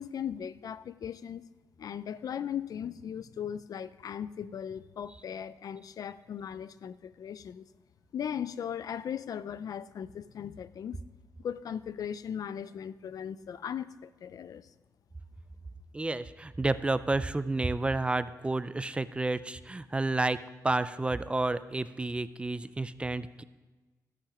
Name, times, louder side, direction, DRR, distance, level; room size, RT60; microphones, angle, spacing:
voice 1, 0.0-1.5 1.8-7.7 8.1-11.0 11.4-14.7, left 8 dB, 65° left, 16 dB, 0.4 m, -38 dB
voice 2, 15.9-23.4, right 2 dB, 15° right, 14 dB, 0.4 m, -30 dB
13.0 x 8.6 x 4.9 m, 1.2 s
cardioid pair, 110°, 7 cm